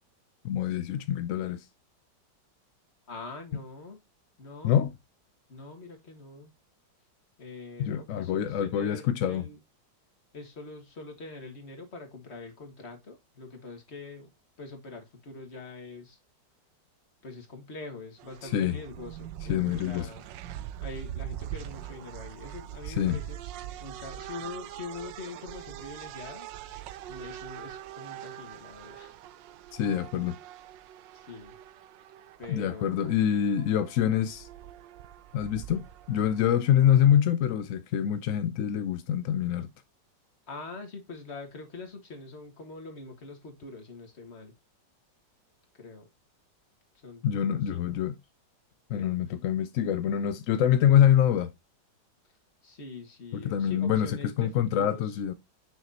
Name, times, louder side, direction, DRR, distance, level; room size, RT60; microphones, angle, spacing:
voice 1, 0.4-1.6 4.6-4.9 7.8-9.4 18.4-18.8 19.5-20.1 22.9-23.2 29.7-30.4 32.5-34.5 35.3-39.7 47.2-48.2 48.9-51.5 53.3-55.3, left 10 dB, 70° left, 0.7 m, -25 dB
voice 2, 3.1-4.0 4.4-4.8 5.5-6.5 7.4-9.6 10.3-14.3 14.6-16.2 17.2-20.2 20.8-23.4 23.8-26.5 27.1-29.1 31.1-31.6 32.4-33.2 40.5-44.6 45.8-46.1 47.0-47.9 48.9-49.1 52.6-55.2, left 3 dB, 40° left, 1.9 m, -44 dB
sound 1, 18.2-37.2, right 12 dB, 85° right, 1.3 m, -43 dB
6.6 x 6.3 x 2.8 m
omnidirectional pair, 1.9 m